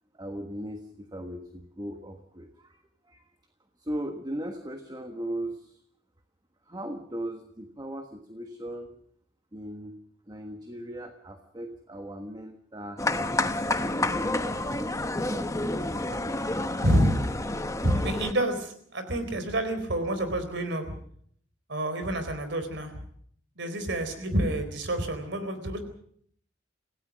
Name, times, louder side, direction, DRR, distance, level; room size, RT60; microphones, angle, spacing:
voice 1, 0.1-2.8 3.0-3.3 3.8-5.8 6.7-9.0 9.5-10.0 10.3-13.4 13.7-14.6 15.2-17.3, right 1 dB, 20° right, 6 dB, 1.4 m, -39 dB
sound 1, 13.0-18.3, left 2 dB, 15° left, 1.1 m, -29 dB
voice 2, 16.8-17.2 17.8-20.9 21.7-23.0 23.6-25.8, right 1 dB, 65° right, 9 dB, 4.1 m, -28 dB
27.0 x 16.5 x 6.2 m, 0.63 s
head